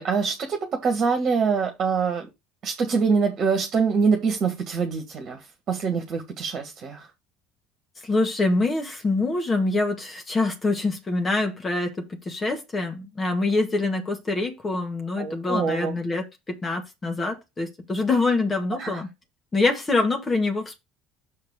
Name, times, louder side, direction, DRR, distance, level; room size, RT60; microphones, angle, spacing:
voice 1, 0.0-2.3 2.6-5.4 5.7-7.1 15.2-15.9 18.8-19.0, right 5 dB, 40° right, 1.6 m, -24 dB
voice 2, 8.0-19.1 19.5-20.8, left 3 dB, 25° left, 2.0 m, -25 dB
6.6 x 4.2 x 6.6 m
figure-of-eight pair, 60°, 0 cm